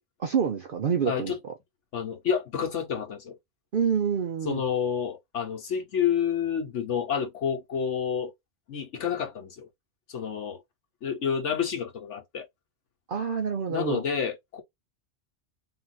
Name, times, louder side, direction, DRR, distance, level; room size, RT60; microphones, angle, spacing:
voice 1, 0.2-1.3 3.7-4.6 13.1-14.0, right 7 dB, 55° right, 0.7 m, -27 dB
voice 2, 1.1-1.4 1.9-3.4 4.5-8.3 8.7-9.7 10.1-10.6 11.0-12.5 13.7-14.6, left 7 dB, 75° left, 1.3 m, -29 dB
3.7 x 2.5 x 4.1 m
omnidirectional pair, 1.2 m